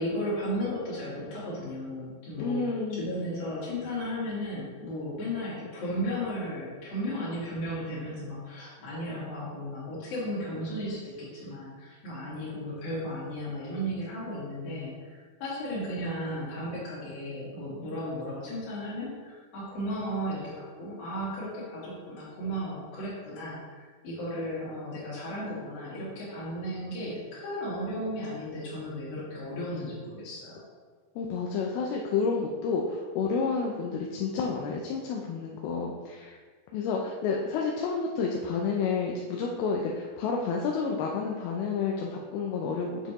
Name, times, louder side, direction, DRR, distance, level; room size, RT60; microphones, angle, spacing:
voice 1, 0.0-2.6 2.9-30.6, equal, 70° left, -7 dB, 4.1 m, -35 dB
voice 2, 2.4-3.1 31.2-36.4 36.7-43.1, left 5 dB, 85° left, 0 dB, 2.6 m, -30 dB
7.5 x 6.6 x 3.0 m, 1.5 s
omnidirectional pair, 4.3 m